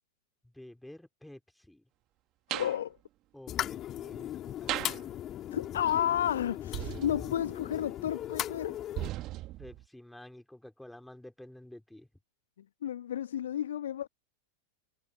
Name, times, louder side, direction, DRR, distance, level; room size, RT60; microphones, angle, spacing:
voice 1, 0.5-1.8 3.3-5.4 9.6-12.1, left 1 dB, 5° left, 4.0 m, -51 dB
voice 2, 2.5-3.0 5.5-8.8 12.8-14.1, left 10 dB, 60° left, 1.3 m, -32 dB
sound 1, 2.5-2.8 4.7-5.1 6.7-7.7 9.0-9.8, right 16 dB, 35° right, 2.7 m, -37 dB
sound 2, 3.5-9.1, left 12 dB, 30° left, 3.2 m, -38 dB
figure-of-eight pair, 90°, 0 cm